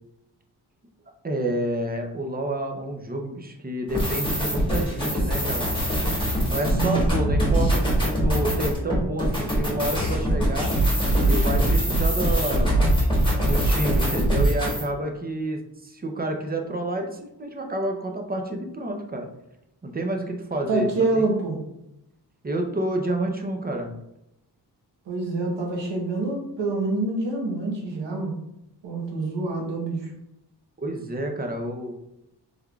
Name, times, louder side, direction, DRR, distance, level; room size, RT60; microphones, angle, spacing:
voice 1, 1.2-5.7 6.5-10.7 11.2-12.8 13.5-19.3 19.8-20.9 21.1-21.2 22.4-23.9 30.8-31.9, right 1 dB, 20° right, 3 dB, 0.5 m, -29 dB
sound 1, 3.9-14.8, right 1 dB, 10° left, 1.2 m, -22 dB
voice 2, 6.7-7.1 20.7-21.6 25.1-28.3 28.8-30.0, right 3 dB, 85° right, -1 dB, 1.1 m, -26 dB
3.5 x 3.4 x 2.3 m, 0.84 s
wide cardioid pair, 90°, 42 cm